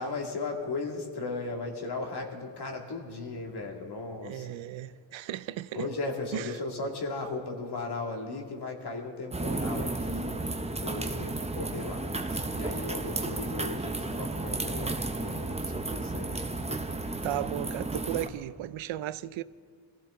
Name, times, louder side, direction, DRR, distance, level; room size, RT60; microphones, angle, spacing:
voice 1, 0.0-4.6 5.7-10.4 10.8-16.8, left 3 dB, 60° left, 2.3 m, -36 dB
voice 2, 4.2-5.9 6.3-6.5 17.2-19.4, right 13 dB, 90° right, 0.5 m, -35 dB
sound 1, 9.3-18.3, right 2 dB, 15° right, 0.8 m, -33 dB
23.0 x 15.0 x 3.8 m
wide cardioid pair, 105°, 45 cm